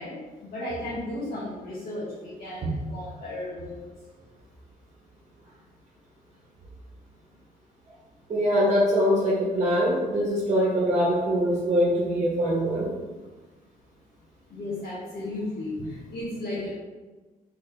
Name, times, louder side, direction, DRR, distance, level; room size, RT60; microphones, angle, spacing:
voice 1, 0.0-3.9 14.5-16.7, left 1 dB, 85° left, -10 dB, 1.4 m, -34 dB
voice 2, 8.3-12.9, equal, 45° right, -5 dB, 1.0 m, -23 dB
4.2 x 3.7 x 3.3 m, 1.2 s
wide cardioid pair, 140°, 16 cm